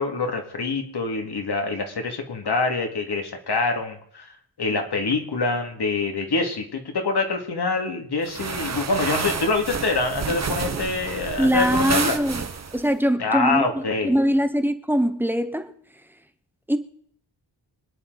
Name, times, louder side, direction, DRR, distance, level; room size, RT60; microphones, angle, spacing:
voice 1, 0.0-4.3 4.6-12.2 13.2-14.2, left 3 dB, 60° left, 2.3 m, -25 dB
sound 1, 8.3-12.9, right 5 dB, 35° right, 1.0 m, -29 dB
voice 2, 11.4-12.4 12.7-15.7 16.7-16.8, equal, 5° right, 0.8 m, -22 dB
25.5 x 10.0 x 4.0 m
wide cardioid pair, 160°, 44 cm